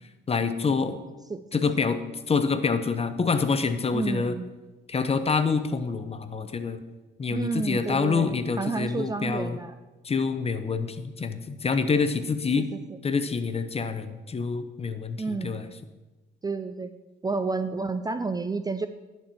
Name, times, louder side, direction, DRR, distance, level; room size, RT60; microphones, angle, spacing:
voice 1, 0.3-1.0 1.5-2.0 2.3-4.3 4.9-6.8 7.2-9.6 10.0-12.7 13.0-15.7, left 5 dB, 30° left, 10 dB, 0.8 m, -26 dB
voice 2, 1.3-1.6 3.9-4.5 7.3-9.7 12.6-12.8 15.2-15.6 16.4-16.9 17.2-18.9, right 4 dB, 20° right, 10 dB, 0.4 m, -30 dB
10.0 x 4.5 x 7.0 m, 1.2 s
cardioid pair, 90°, 20 cm